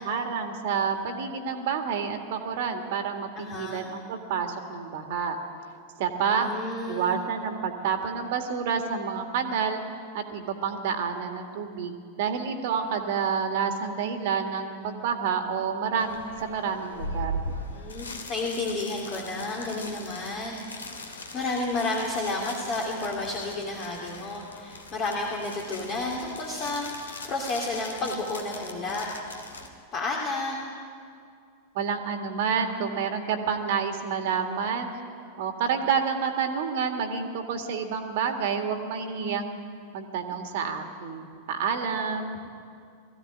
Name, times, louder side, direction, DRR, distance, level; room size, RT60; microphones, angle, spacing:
voice 1, 0.0-5.4 6.0-6.5 6.9-9.8 10.1-17.4 31.7-34.9 35.4-39.6 39.9-42.4, right 6 dB, 50° right, 5 dB, 1.9 m, -29 dB
voice 2, 3.4-3.8 6.2-7.2 17.7-20.6 20.9-29.1 29.9-30.7, left 2 dB, 35° left, -1 dB, 2.7 m, -31 dB
sound 1, 16.0-29.7, left 1 dB, 70° left, 2.3 m, -40 dB
20.0 x 15.0 x 9.4 m, 2.3 s
figure-of-eight pair, 90°, 0 cm